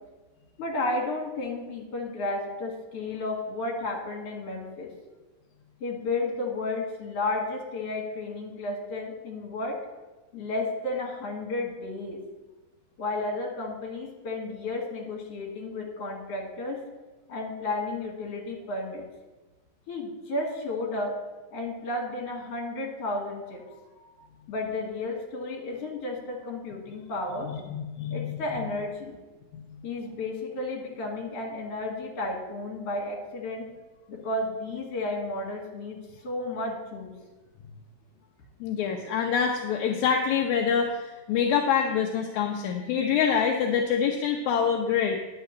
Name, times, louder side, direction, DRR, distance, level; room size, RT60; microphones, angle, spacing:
voice 1, 0.6-4.9 5.8-9.8 10.3-12.2 13.0-16.8 17.3-19.0 19.9-21.1 21.5-24.2 24.5-27.5 28.1-29.2 29.8-33.7 34.1-37.1, left 2 dB, 50° left, 0 dB, 2.9 m, -32 dB
voice 2, 27.4-28.4 29.5-29.6 38.6-45.2, left 7 dB, 75° left, 2 dB, 1.9 m, -26 dB
10.0 x 5.7 x 7.9 m, 1.2 s
omnidirectional pair, 4.0 m